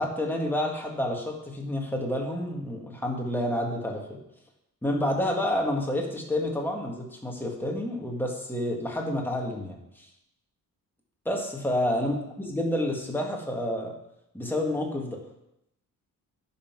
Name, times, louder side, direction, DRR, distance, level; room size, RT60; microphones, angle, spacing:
voice 1, 0.0-4.2 4.8-10.1 11.3-13.9 14.3-15.2, left 1 dB, 5° left, 0 dB, 1.8 m, -29 dB
10.0 x 5.7 x 6.0 m, 0.82 s
wide cardioid pair, 140°, 33 cm